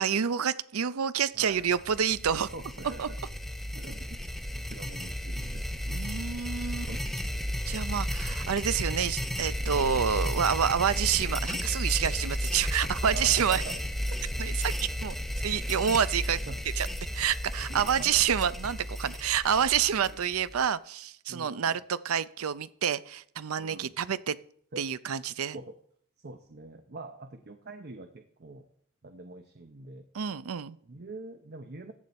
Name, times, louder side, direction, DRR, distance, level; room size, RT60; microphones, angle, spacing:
voice 1, 0.0-2.5 3.0-3.1 5.9-6.9 7.7-13.6 14.4-15.2 15.4-16.4 16.8-16.9 17.1-24.4 24.8-25.6 30.1-30.8, right 8 dB, 75° right, 16 dB, 0.5 m, -28 dB
voice 2, 1.3-1.6 2.5-3.0 3.7-4.2 4.5-7.0 9.6-10.0 13.1-13.8 16.5-16.6 17.7-18.2 20.0-20.2 21.3-21.8 23.6-23.9 24.7-24.8 25.5-25.8 26.2-28.7 29.0-30.1 30.8-31.9, right 2 dB, 50° right, 7 dB, 0.8 m, -44 dB
sound 1, 1.6-20.6, equal, ahead, 0.7 m, -33 dB
14.5 x 8.1 x 4.2 m, 0.62 s
head